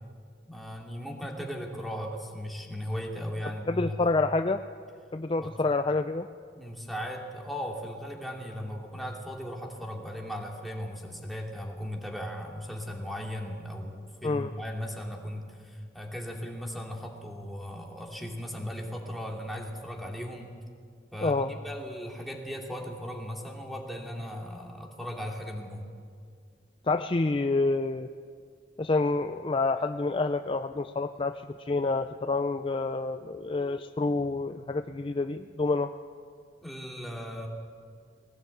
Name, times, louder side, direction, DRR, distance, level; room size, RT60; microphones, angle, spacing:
voice 1, 0.4-4.1 5.4-5.5 6.6-20.5 21.1-25.8 36.6-37.5, equal, ahead, -1 dB, 2.7 m, -37 dB
voice 2, 3.7-4.6 5.1-6.3 14.2-14.5 21.2-21.5 26.9-28.1 28.8-35.9, left 3 dB, 30° left, 9 dB, 0.5 m, -28 dB
20.5 x 18.5 x 8.5 m, 2.1 s
head